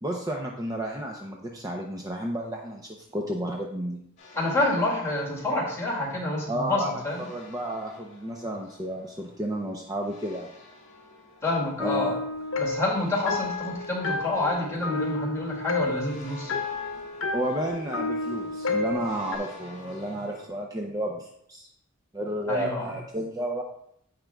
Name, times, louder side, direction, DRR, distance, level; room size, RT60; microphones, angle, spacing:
voice 1, 0.0-4.0 6.5-6.9 7.3-10.5 11.8-12.1 17.3-21.7 22.1-23.6, right 1 dB, 20° right, 1 dB, 0.6 m, -32 dB
sound 1, 4.2-20.5, left 2 dB, 45° left, 2.9 m, -51 dB
voice 2, 4.3-7.3 11.4-12.2 12.6-16.5 22.5-22.9, left 2 dB, 15° left, -5 dB, 2.3 m, -28 dB
sound 2, 11.8-19.4, left 3 dB, 75° left, 0.9 m, -31 dB
15.0 x 5.1 x 2.3 m, 0.71 s
head